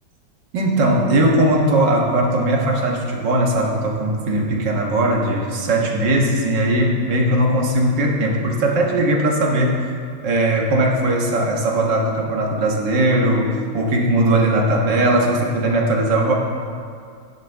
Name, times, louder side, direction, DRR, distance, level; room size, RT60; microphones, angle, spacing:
voice 1, 0.5-9.8 10.2-16.3, right 1 dB, 65° right, -1 dB, 2.1 m, -19 dB
12.5 x 10.5 x 3.5 m, 2.2 s
omnidirectional pair, 2.1 m